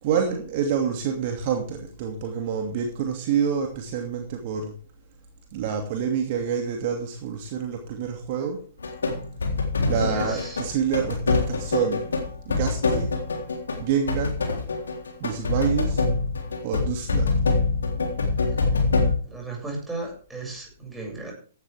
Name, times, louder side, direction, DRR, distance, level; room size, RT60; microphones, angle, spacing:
voice 1, 0.0-4.7 5.5-8.6 9.9-12.2 12.5-13.1 13.8-14.4 15.2-16.0 16.6-17.3 18.3-18.8, right 7 dB, 40° right, 2 dB, 2.6 m, -27 dB
sound 1, 8.8-19.1, left 3 dB, 70° left, 3.6 m, -25 dB
voice 2, 10.0-10.6 19.3-21.3, right 2 dB, 5° right, -1 dB, 7.3 m, -35 dB
16.0 x 12.0 x 3.6 m, 0.41 s
figure-of-eight pair, 115°, 0 cm